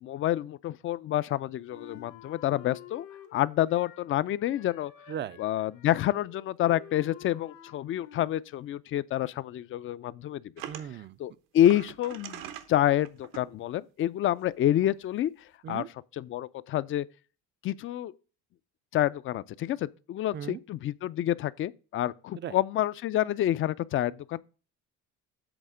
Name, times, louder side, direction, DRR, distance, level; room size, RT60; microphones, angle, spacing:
voice 1, 0.0-3.1 3.3-4.9 5.4-10.4 11.2-12.4 12.7-15.3 15.7-15.8 16.2-17.1 17.6-18.1 18.9-24.4, left 12 dB, 40° left, 0.4 m, -28 dB
Wind instrument woodwind instrument, 1.7-4.1 4.4-8.5, left 10 dB, 70° left, 1.2 m, -50 dB
voice 2, 5.1-5.4 10.6-11.2 15.6-15.9 20.3-20.6 22.3-22.6, right 10 dB, 35° right, 0.4 m, -37 dB
sound 1, 10.6-10.9 11.6-12.7 13.1-13.4 14.5-14.6 14.8-15.0, right 10 dB, 85° right, 1.0 m, -41 dB
8.0 x 3.5 x 6.1 m
cardioid pair, 125°, 32 cm